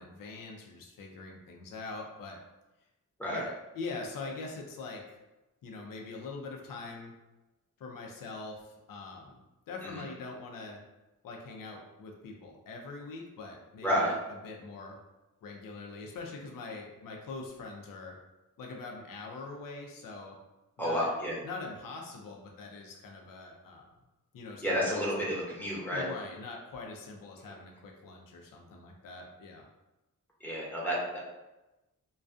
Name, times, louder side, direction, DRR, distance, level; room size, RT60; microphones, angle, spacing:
voice 1, 0.0-2.4 3.3-5.2 5.6-7.1 7.8-10.8 11.2-15.0 15.4-18.2 18.6-20.4 20.8-21.1 21.4-23.9 24.3-25.1 25.9-29.7, left 3 dB, 70° left, 0 dB, 0.5 m, -43 dB
voice 2, 13.8-14.1 20.8-21.4 24.6-26.0 30.4-31.2, equal, 5° left, -5 dB, 0.8 m, -30 dB
2.3 x 2.3 x 2.5 m, 1.0 s
cardioid pair, 85°, 34 cm